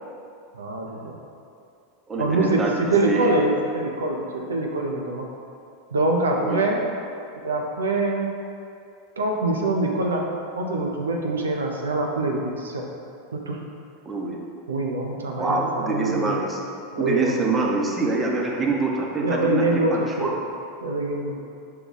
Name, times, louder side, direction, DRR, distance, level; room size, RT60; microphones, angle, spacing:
voice 1, 0.5-1.1 2.2-5.2 5.9-6.8 7.3-8.3 9.2-10.3 10.6-12.8 13.3-13.6 14.7-16.4 16.9-17.4 19.2-20.4 20.8-21.4, right 2 dB, 90° right, 0 dB, 0.5 m, -24 dB
voice 2, 2.1-3.4 6.4-6.7 14.1-14.4 15.4-16.6 17.0-20.3 21.3-21.4, right 3 dB, 20° right, -1 dB, 0.7 m, -25 dB
5.3 x 2.3 x 3.9 m, 2.5 s
hypercardioid pair, 95°, 0 cm